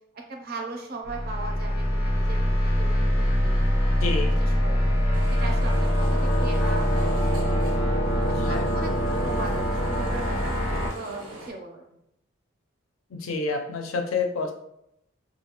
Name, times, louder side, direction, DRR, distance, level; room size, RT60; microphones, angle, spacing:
voice 1, 0.1-3.6 4.4-4.9 5.3-7.6 8.3-11.8, right 2 dB, 45° right, 2 dB, 0.4 m, -38 dB
sound 1, 1.0-10.9, equal, 25° left, 0.5 m, -23 dB
voice 2, 4.0-4.3 8.3-8.6 13.1-14.5, left 4 dB, 80° left, 4 dB, 0.5 m, -28 dB
sound 2, 5.1-11.5, right 1 dB, 90° right, 0.7 m, -44 dB
2.4 x 2.1 x 2.9 m, 0.79 s
head